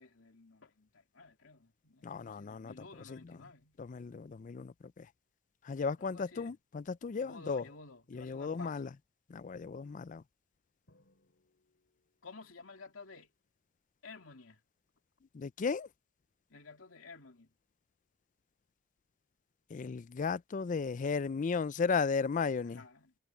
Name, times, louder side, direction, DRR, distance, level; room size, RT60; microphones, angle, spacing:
voice 1, 0.0-3.8 6.0-6.5 7.2-9.0 12.2-13.3 14.0-14.6 16.5-17.5 22.7-23.1, left 3 dB, 80° left, 2.9 m, -53 dB
voice 2, 2.0-3.4 3.8-5.1 5.6-7.6 8.1-8.9 9.3-10.2 15.3-15.9 19.7-22.8, left 5 dB, 40° left, 0.4 m, -35 dB
Drum, 10.9-12.6, left 1 dB, 60° left, 4.0 m, -71 dB
head